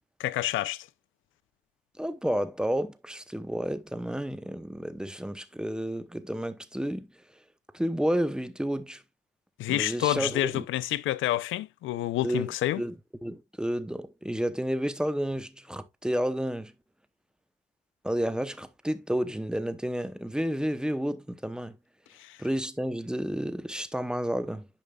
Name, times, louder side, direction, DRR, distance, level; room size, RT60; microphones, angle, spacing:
voice 1, 0.2-0.9 9.6-12.8 22.2-22.4, left 14 dB, 80° left, 0.6 m, -28 dB
voice 2, 2.0-7.1 7.7-9.0 9.7-10.6 12.2-12.9 13.2-16.7 18.0-21.8 22.4-24.7, equal, 5° right, 0.8 m, -31 dB
10.0 x 5.2 x 2.3 m
cardioid pair, 90°, 20 cm